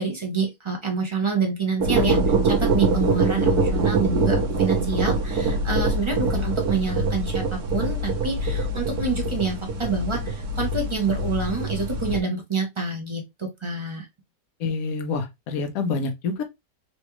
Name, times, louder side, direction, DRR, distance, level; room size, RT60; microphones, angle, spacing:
voice 1, 0.0-14.1, right 4 dB, 40° right, 0.4 m, -27 dB
sound 1, 1.8-12.2, right 2 dB, 65° right, 1.3 m, -24 dB
voice 2, 14.6-16.4, left 4 dB, 60° left, 1.1 m, -27 dB
4.0 x 2.3 x 2.9 m
omnidirectional pair, 1.9 m